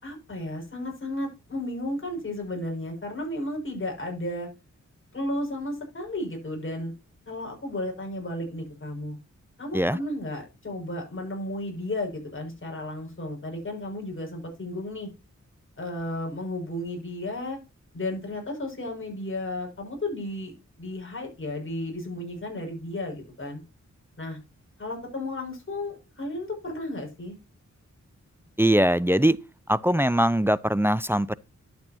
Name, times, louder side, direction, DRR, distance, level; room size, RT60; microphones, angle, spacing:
voice 1, 0.0-4.5 5.1-6.9 7.3-9.2 9.6-15.1 15.8-17.6 17.9-23.6 24.2-24.4 24.8-27.4, left 1 dB, 45° left, 6.0 m, -33 dB
voice 2, 28.6-29.4 29.7-31.4, right 1 dB, 10° right, 0.4 m, -21 dB
11.5 x 8.4 x 2.8 m
wide cardioid pair, 85°, 30 cm